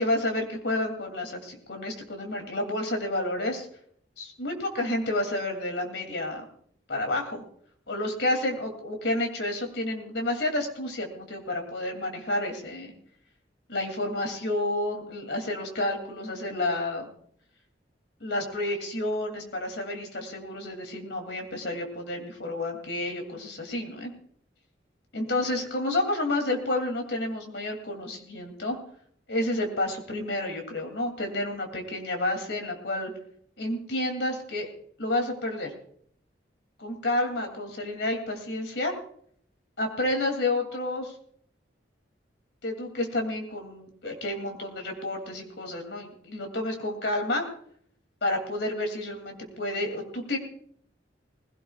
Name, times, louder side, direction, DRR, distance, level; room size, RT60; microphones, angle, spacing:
voice 1, 0.0-3.7 4.2-6.4 6.9-7.4 7.9-12.9 13.7-17.1 18.2-24.1 25.1-28.8 29.3-33.1 33.6-34.7 35.0-35.7 36.8-38.9 39.8-41.1 42.6-47.4 48.2-50.4, left 1 dB, 75° left, 3 dB, 2.9 m, -30 dB
19.5 x 16.5 x 2.4 m, 0.63 s
head